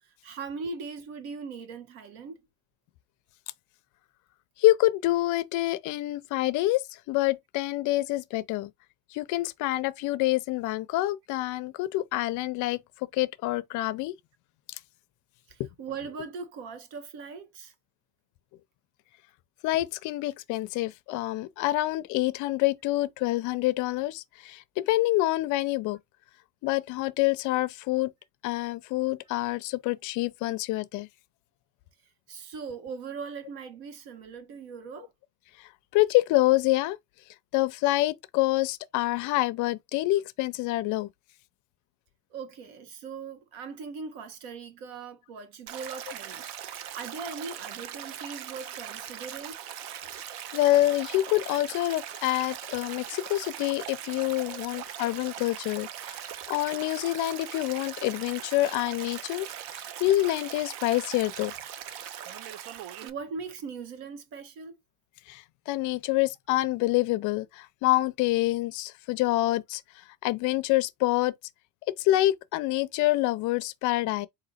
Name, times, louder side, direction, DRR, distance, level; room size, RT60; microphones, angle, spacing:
voice 1, 0.2-2.4 15.5-17.7 32.3-35.1 42.3-46.5 46.9-49.5 54.5-54.6 62.8-64.8, right 5 dB, 85° right, 1.3 m, -40 dB
voice 2, 4.6-8.7 9.1-14.1 15.6-15.7 19.6-26.0 26.6-28.1 28.4-31.1 35.6-37.0 37.5-41.1 50.5-59.5 59.7-61.5 65.3-69.8 70.2-71.3 72.0-74.3, left 17 dB, 50° left, 0.5 m, -27 dB
Stream, 45.7-63.1, right 10 dB, 70° right, 0.7 m, -40 dB
4.0 x 2.6 x 4.1 m
cardioid pair, 160°, 39 cm